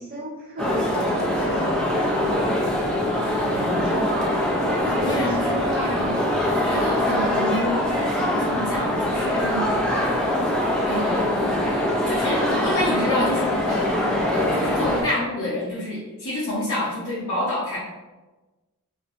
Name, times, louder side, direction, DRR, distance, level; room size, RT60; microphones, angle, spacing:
voice 1, 0.0-2.7 3.1-5.6, right 1 dB, 40° right, -7 dB, 1.0 m, -34 dB
sound 1, 0.6-15.0, left 1 dB, 5° left, 0.4 m, -23 dB
voice 2, 5.0-6.2 6.5-7.8 8.4-9.8 10.9-11.4 12.0-17.8, left 1 dB, 65° left, -9 dB, 0.8 m, -28 dB
3.2 x 2.8 x 2.5 m, 1.2 s
head